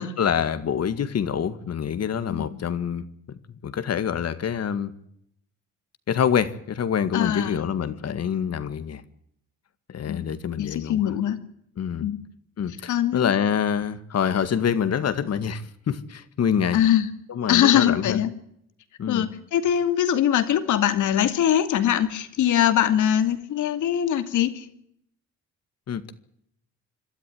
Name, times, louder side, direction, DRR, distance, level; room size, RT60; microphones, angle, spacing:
voice 1, 0.0-4.9 6.1-9.0 9.9-11.1 11.8-12.1 12.6-16.8 17.3-18.2 19.0-19.3 25.9-26.1, left 8 dB, 55° left, 2.1 m, -26 dB
voice 2, 7.1-7.6 10.1-10.3 10.6-11.4 12.0-12.2 12.9-13.3 16.7-17.1 17.5-18.3 19.1-24.7, left 10 dB, 80° left, 2.6 m, -22 dB
26.0 x 13.0 x 9.4 m
cardioid pair, 90°, 30 cm